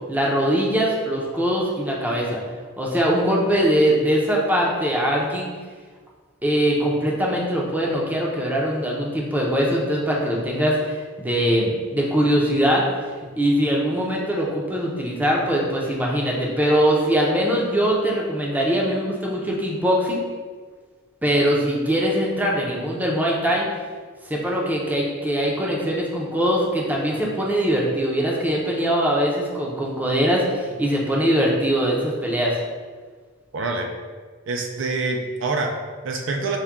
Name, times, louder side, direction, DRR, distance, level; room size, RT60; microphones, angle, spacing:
voice 1, 0.1-2.4 2.8-5.5 6.4-12.8 13.4-20.2 21.2-23.7 24.3-32.6, equal, 10° right, -3 dB, 0.5 m, -22 dB
voice 2, 33.5-33.9 34.5-36.6, right 3 dB, 60° right, 3 dB, 0.4 m, -26 dB
5.7 x 2.2 x 3.6 m, 1.5 s
head